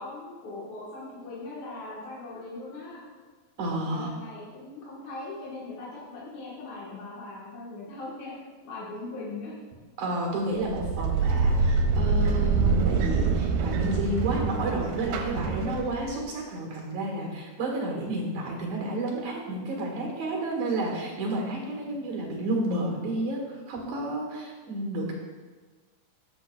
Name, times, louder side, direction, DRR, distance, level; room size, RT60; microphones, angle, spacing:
voice 1, 0.0-3.0 3.8-8.3 8.6-9.6 21.8-22.0, left 2 dB, 65° left, -6 dB, 2.6 m, -40 dB
voice 2, 3.6-4.1 10.0-25.1, right 1 dB, 60° right, -1 dB, 2.8 m, -31 dB
sound 1, 10.6-16.2, right 4 dB, 85° right, 2.5 m, -25 dB
14.0 x 6.5 x 2.3 m, 1.4 s
omnidirectional pair, 3.9 m